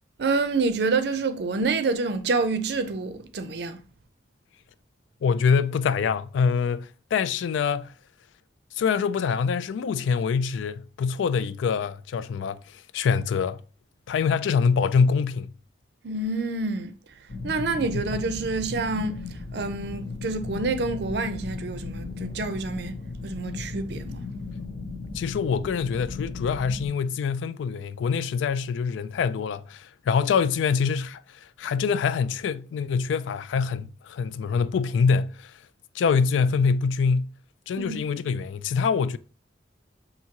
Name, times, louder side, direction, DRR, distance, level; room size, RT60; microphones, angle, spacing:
voice 1, 0.2-3.8 16.0-16.9 17.4-23.0 23.2-24.3 37.8-38.0, right 3 dB, 65° right, 0.5 m, -27 dB
voice 2, 5.2-7.9 8.8-13.6 14.1-15.5 25.1-31.2 31.6-35.5 35.9-37.3 37.7-39.2, left 5 dB, 90° left, 0.3 m, -25 dB
sound 1, 17.3-26.9, left 3 dB, 70° left, 0.9 m, -36 dB
5.8 x 2.7 x 2.8 m
head